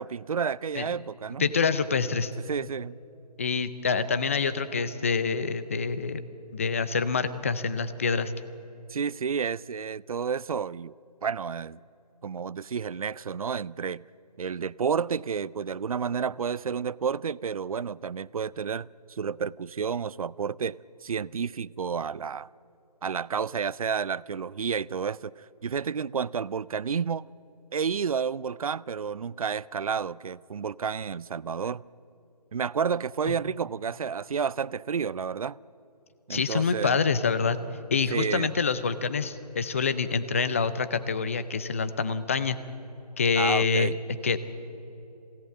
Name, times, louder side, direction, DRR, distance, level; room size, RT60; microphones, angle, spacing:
voice 1, 0.0-1.5 2.5-3.0 8.9-10.9 11.2-11.8 12.2-14.0 14.4-22.5 23.0-25.3 25.6-27.2 27.7-31.8 32.5-35.6 36.3-37.0 38.1-38.5 43.3-44.0, right 6 dB, 60° right, 0.4 m, -30 dB
voice 2, 1.4-2.3 3.4-6.2 6.5-8.3 33.3-33.4 36.3-37.6 37.9-42.6 43.2-44.4, left 5 dB, 20° left, 0.5 m, -26 dB
22.5 x 17.0 x 8.4 m
figure-of-eight pair, 160°, 21 cm